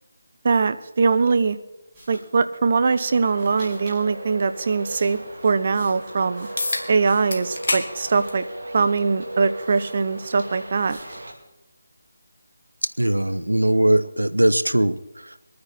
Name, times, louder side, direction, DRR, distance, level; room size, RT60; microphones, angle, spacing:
voice 1, 0.4-1.6 2.1-6.5 6.9-8.4 8.7-11.0, right 4 dB, 45° right, 12 dB, 0.8 m, -21 dB
sound 1, 1.9-2.3 3.3-4.0 4.6-7.5 7.9-8.7 9.2-9.3 9.5-10.4 10.8-11.3, equal, 25° right, 6.1 m, -48 dB
Traffic noise roadway noise, 3.1-11.3, right 1 dB, 60° right, 2.6 m, -37 dB
sound 2, 6.6-6.9 7.3-7.9 8.3-8.4 9.5-9.6 14.5-14.6, left 2 dB, 55° left, 1.9 m, -26 dB
voice 2, 12.8-15.3, right 1 dB, 90° right, 13 dB, 0.7 m, -20 dB
22.0 x 9.6 x 4.4 m, 0.95 s
figure-of-eight pair, 155°, 0 cm